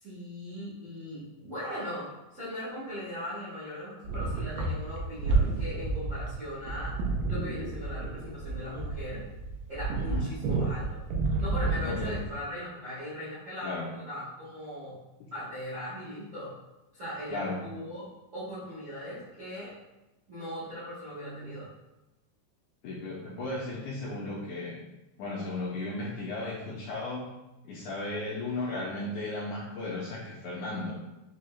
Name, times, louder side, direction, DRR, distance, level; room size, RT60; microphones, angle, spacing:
voice 1, 0.0-6.9 7.3-9.2 9.7-10.9 11.4-13.8 14.1-15.0 15.3-16.5 16.9-18.0 18.3-19.7 20.3-21.7, equal, 65° right, -11 dB, 0.7 m, -39 dB
sound 1, 4.0-12.3, right 3 dB, 85° right, 2.4 m, -30 dB
voice 2, 11.8-12.2 13.6-13.9 15.2-15.3 17.3-17.6 21.2-21.6 22.8-24.8 25.2-27.2 27.6-30.9, left 2 dB, 85° left, -4 dB, 1.8 m, -35 dB
6.2 x 2.3 x 3.1 m, 0.98 s
omnidirectional pair, 4.0 m